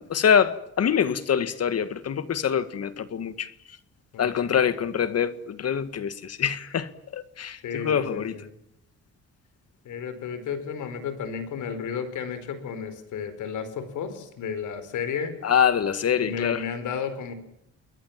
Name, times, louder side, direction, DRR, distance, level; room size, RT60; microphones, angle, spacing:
voice 1, 0.0-3.5 4.2-8.3 15.4-16.6, left 8 dB, 55° left, 1.9 m, -25 dB
voice 2, 4.1-4.6 7.6-8.5 9.8-15.3 16.2-17.3, left 6 dB, 80° left, 5.1 m, -33 dB
29.5 x 22.0 x 7.5 m
cardioid pair, 90°, 30 cm